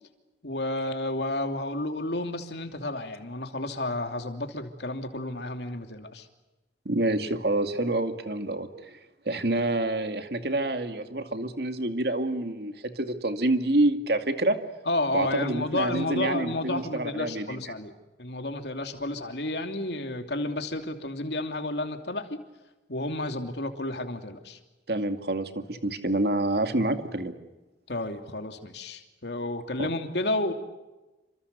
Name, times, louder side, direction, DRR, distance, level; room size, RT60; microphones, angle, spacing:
voice 1, 0.4-6.3 14.9-17.9 18.2-22.4 22.9-24.6 27.9-30.5, left 2 dB, 75° left, 6 dB, 2.9 m, -31 dB
voice 2, 6.9-9.0 9.3-14.6 15.1-17.6 24.9-27.3 29.8-29.9, right 2 dB, 65° right, 7 dB, 2.4 m, -27 dB
28.5 x 26.0 x 6.9 m, 1.1 s
head